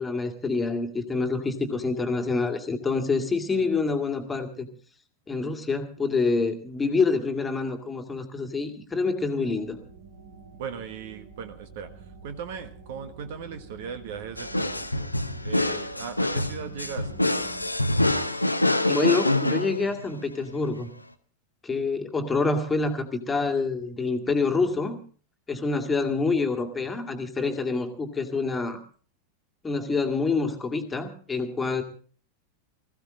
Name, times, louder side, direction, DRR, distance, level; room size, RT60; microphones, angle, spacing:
voice 1, 0.0-4.7 5.3-9.8 18.9-20.9 21.6-25.0 25.5-28.8 29.6-31.8, left 4 dB, 15° left, 5 dB, 2.0 m, -27 dB
sound 1, 9.5-17.7, right 4 dB, 80° right, 2.7 m, -47 dB
voice 2, 10.5-11.9 12.2-15.1 15.4-17.3, right 7 dB, 55° right, 9 dB, 1.4 m, -38 dB
sound 2, 14.4-20.2, left 1 dB, 85° left, 0.9 m, -26 dB
20.5 x 15.0 x 3.7 m, 0.43 s
figure-of-eight pair, 90°, 0 cm